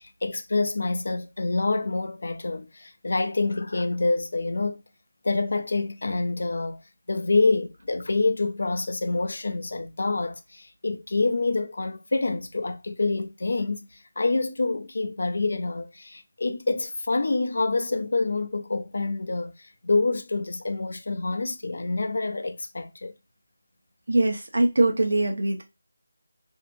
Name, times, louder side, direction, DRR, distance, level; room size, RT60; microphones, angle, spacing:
voice 1, 0.0-4.8 5.2-6.8 7.1-23.1, left 3 dB, 55° left, 0.5 m, -27 dB
voice 2, 24.1-25.6, right 2 dB, 70° right, 0.8 m, -22 dB
2.7 x 2.5 x 2.5 m
figure-of-eight pair, 175°, 0 cm